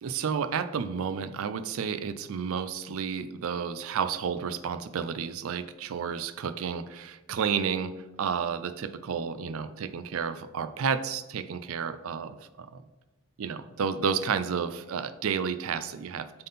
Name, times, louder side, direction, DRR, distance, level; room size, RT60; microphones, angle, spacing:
voice 1, 0.0-12.8 13.4-16.3, right 6 dB, 75° right, 11 dB, 0.4 m, -31 dB
7.7 x 3.7 x 4.1 m, 1.1 s
head